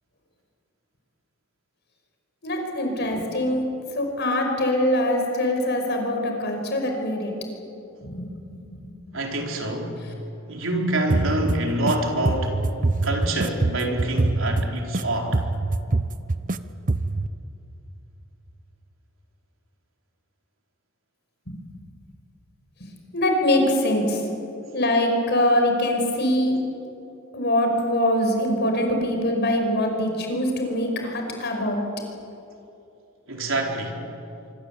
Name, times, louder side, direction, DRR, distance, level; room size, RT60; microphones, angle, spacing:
voice 1, 2.4-3.6 3.9-7.3 8.0-8.9 21.5-21.6 22.8-22.9 23.1-24.2 24.7-26.5 27.3-31.8, left 1 dB, 55° left, 3 dB, 5.5 m, -23 dB
voice 2, 9.1-10.0 10.5-12.6 13.0-15.4 33.3-34.1, right 1 dB, 70° right, 1 dB, 4.5 m, -26 dB
sound 1, 11.1-11.9 12.2-15.0 15.3-16.6 16.9-17.3, right 2 dB, 40° right, 0.8 m, -24 dB
25.0 x 24.0 x 8.6 m, 2.7 s
head